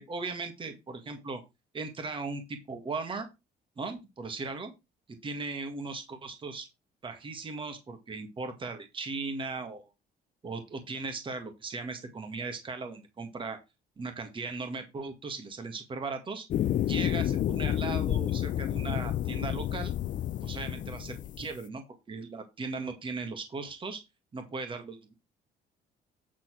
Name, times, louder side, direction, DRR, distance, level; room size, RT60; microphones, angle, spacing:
voice 1, 0.0-1.4 1.7-3.3 3.8-4.7 5.2-6.7 7.0-9.9 10.4-13.6 14.0-16.5 16.9-19.9 20.4-24.0 24.3-25.1, right 3 dB, 30° right, 6 dB, 1.9 m, -38 dB
sound 1, 16.5-21.5, left 11 dB, 50° left, 0.5 m, -30 dB
9.1 x 4.1 x 6.1 m, 0.24 s
cardioid pair, 110°, 17 cm